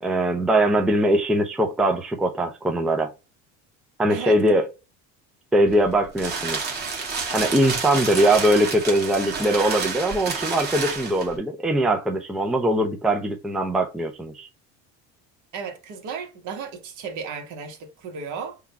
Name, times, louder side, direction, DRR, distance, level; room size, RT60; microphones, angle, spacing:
voice 1, 0.0-3.1 4.0-4.6 5.5-6.6 7.3-14.5, right 1 dB, ahead, 0.4 m, -21 dB
voice 2, 4.1-4.4 15.5-18.6, right 5 dB, 60° right, 1.2 m, -34 dB
sound 1, 5.7-11.4, right 4 dB, 30° right, 1.3 m, -29 dB
3.7 x 2.3 x 4.1 m
cardioid pair, 120°, 33 cm